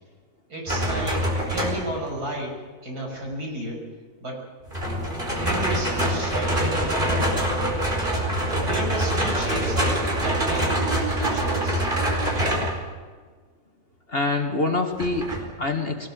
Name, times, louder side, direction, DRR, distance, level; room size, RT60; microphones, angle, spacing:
voice 1, 0.5-3.8 4.2-4.4 5.4-7.4 8.5-12.2, right 1 dB, 65° right, 0 dB, 6.7 m, -33 dB
sound 1, 0.7-2.0 4.7-12.8 15.0-15.4, right 1 dB, 30° right, 4.9 m, -24 dB
voice 2, 14.1-16.1, left 3 dB, 35° left, 4 dB, 2.1 m, -26 dB
22.5 x 19.0 x 7.7 m, 1.4 s
omnidirectional pair, 1.8 m